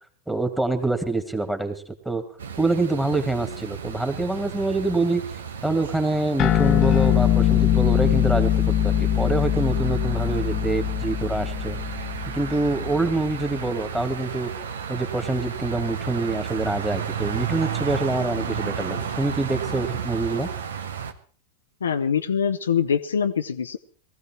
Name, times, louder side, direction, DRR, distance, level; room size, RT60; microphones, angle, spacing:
voice 1, 0.3-2.2 2.6-5.2 5.6-11.8 12.3-14.5 14.9-20.5, right 2 dB, 5° right, 7 dB, 2.2 m, -26 dB
sound 1, 2.4-21.1, right 7 dB, 75° right, 1.2 m, -33 dB
sound 2, 6.4-13.2, left 11 dB, 35° left, 1.0 m, -22 dB
voice 2, 21.8-23.8, left 7 dB, 75° left, 9 dB, 0.7 m, -24 dB
19.0 x 15.0 x 4.5 m, 0.43 s
figure-of-eight pair, 95°, 0 cm